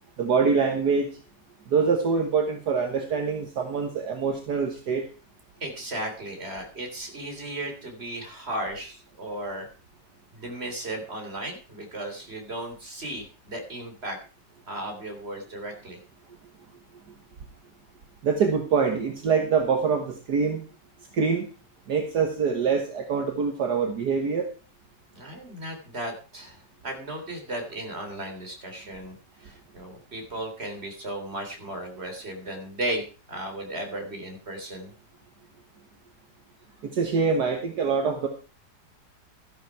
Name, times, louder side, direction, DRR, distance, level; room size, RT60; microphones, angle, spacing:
voice 1, 0.2-1.1 1.7-5.1 18.2-20.6 21.1-21.5 21.9-24.5 36.8-38.3, right 5 dB, 65° right, 5 dB, 1.9 m, -24 dB
voice 2, 5.6-9.7 10.3-14.2 14.7-16.0 25.1-34.9, right 1 dB, 35° right, 4 dB, 3.5 m, -35 dB
13.0 x 11.5 x 4.7 m, 0.36 s
omnidirectional pair, 1.9 m